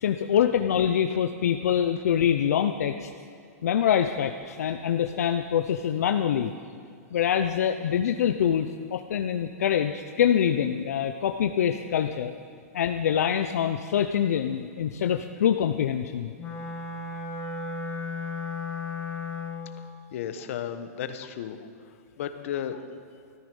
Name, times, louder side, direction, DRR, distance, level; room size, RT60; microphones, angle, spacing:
voice 1, 0.0-3.1 3.6-6.5 7.1-12.3 12.7-16.3, left 9 dB, 80° left, 6 dB, 0.7 m, -25 dB
Wind instrument woodwind instrument, 16.4-19.8, left 3 dB, 20° left, 2.0 m, -34 dB
voice 2, 20.1-21.6 22.2-22.8, left 9 dB, 60° left, 9 dB, 1.2 m, -33 dB
14.0 x 13.5 x 5.4 m, 2.3 s
hypercardioid pair, 155°, 8 cm